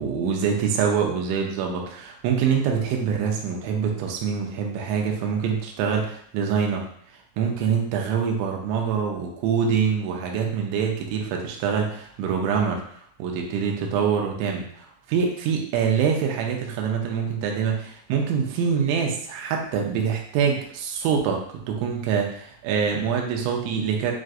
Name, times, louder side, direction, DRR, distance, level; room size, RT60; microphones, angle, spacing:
voice 1, 0.0-6.9 7.4-12.8 13.2-24.1, right 6 dB, 80° right, 1 dB, 2.8 m, -25 dB
7.4 x 2.5 x 2.5 m, 0.62 s
omnidirectional pair, 5.8 m